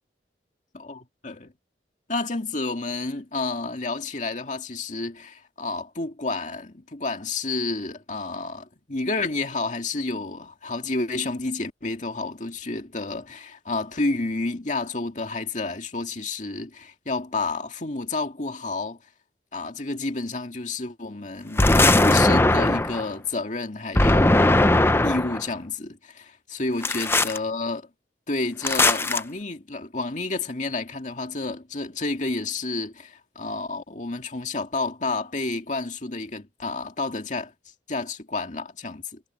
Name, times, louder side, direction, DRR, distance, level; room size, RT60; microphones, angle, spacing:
voice 1, 0.7-1.5 2.1-19.0 19.5-24.7 25.0-27.9 28.3-37.5 37.9-39.2, left 3 dB, 45° left, 2.2 m, -30 dB
sound 1, 21.6-23.1 24.0-25.4 26.8-27.4 28.6-29.2, left 2 dB, 15° left, 0.6 m, -19 dB
head